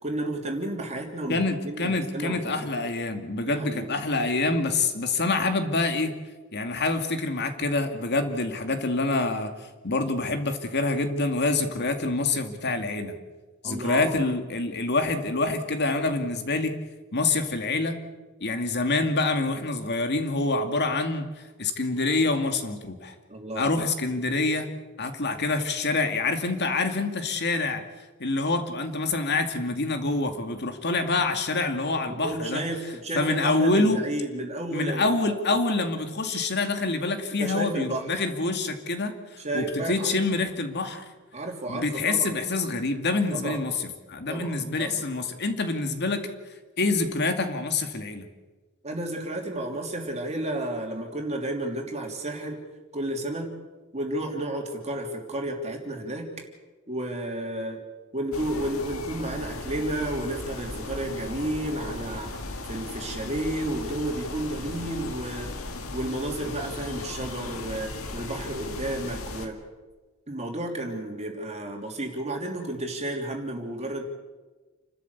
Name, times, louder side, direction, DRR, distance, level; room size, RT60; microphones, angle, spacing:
voice 1, 0.0-2.5 3.4-3.9 13.6-14.2 23.3-23.7 24.0-24.1 32.1-35.4 37.4-38.1 39.4-40.2 41.3-42.4 43.3-43.6 44.3-45.0 48.8-52.6 52.9-53.5 53.9-56.3 56.9-57.8 58.1-65.5 65.9-69.6 70.3-74.0, right 1 dB, 30° right, 1 dB, 3.1 m, -32 dB
voice 2, 1.3-6.1 6.5-13.1 13.6-16.7 17.1-18.0 18.4-23.1 23.6-24.7 25.0-27.8 28.2-32.6 33.1-34.0 34.7-41.1 41.7-46.2 46.8-48.3, left 3 dB, 55° left, 6 dB, 2.4 m, -26 dB
sound 1, 58.3-69.5, left 2 dB, 75° left, 2.1 m, -37 dB
29.5 x 13.0 x 8.2 m, 1.3 s
head